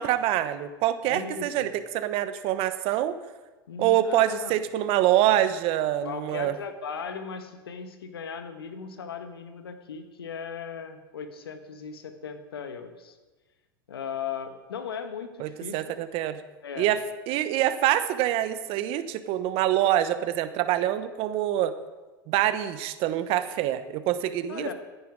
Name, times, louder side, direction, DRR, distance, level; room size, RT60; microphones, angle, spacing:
voice 1, 0.0-1.7 1.9-3.1 3.8-6.5 15.4-16.4 16.8-17.0 17.3-21.7 22.3-24.7, right 12 dB, 50° right, 11 dB, 1.1 m, -25 dB
voice 2, 1.1-1.7 3.7-4.5 6.0-13.2 13.9-15.8 16.6-16.9 24.5-24.7, left 6 dB, 85° left, 8 dB, 1.4 m, -37 dB
15.5 x 9.5 x 4.8 m, 1.2 s
hypercardioid pair, 95°, 12 cm